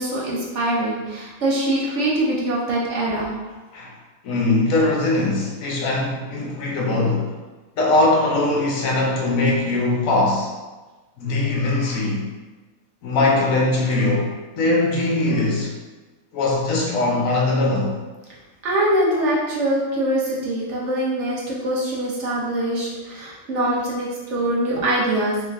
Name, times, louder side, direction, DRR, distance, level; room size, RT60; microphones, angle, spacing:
voice 1, 0.0-3.3 18.6-25.4, right 1 dB, 60° right, -5 dB, 1.1 m, -23 dB
voice 2, 4.2-7.3 7.8-10.5 11.2-12.2 13.0-15.7 16.3-17.9, left 2 dB, 70° left, -2 dB, 1.2 m, -21 dB
3.5 x 3.1 x 3.5 m, 1.2 s
omnidirectional pair, 1.5 m